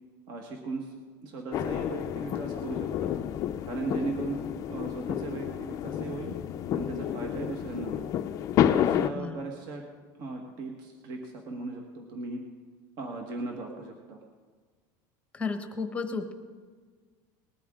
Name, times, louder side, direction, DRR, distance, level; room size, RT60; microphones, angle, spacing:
voice 1, 0.3-0.9 1.2-3.1 3.7-4.4 4.7-6.4 6.7-8.1 8.6-9.8 10.2-12.4 13.0-14.2, right 3 dB, 40° right, 2 dB, 1.5 m, -37 dB
sound 1, 1.5-9.1, left 11 dB, 30° left, 0.5 m, -30 dB
voice 2, 9.1-9.4 15.3-16.3, left 4 dB, 10° left, 7 dB, 1.0 m, -33 dB
20.0 x 12.5 x 3.7 m, 1.5 s
cardioid pair, 165°, 11 cm